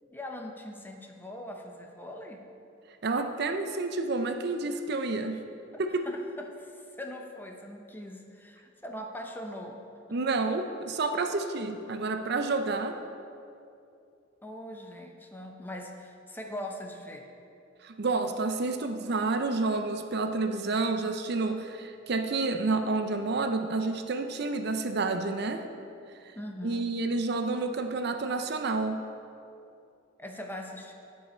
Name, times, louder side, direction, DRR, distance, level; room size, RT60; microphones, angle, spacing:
voice 1, 0.0-2.4 6.1-9.8 10.1-10.2 14.4-17.3 26.3-26.9 30.2-30.9, left 1 dB, 10° left, 2 dB, 0.7 m, -41 dB
voice 2, 3.0-5.4 5.8-5.9 10.1-13.0 17.8-25.6 26.6-29.0, right 3 dB, 55° right, 6 dB, 0.5 m, -29 dB
13.5 x 5.6 x 4.4 m, 2.6 s
head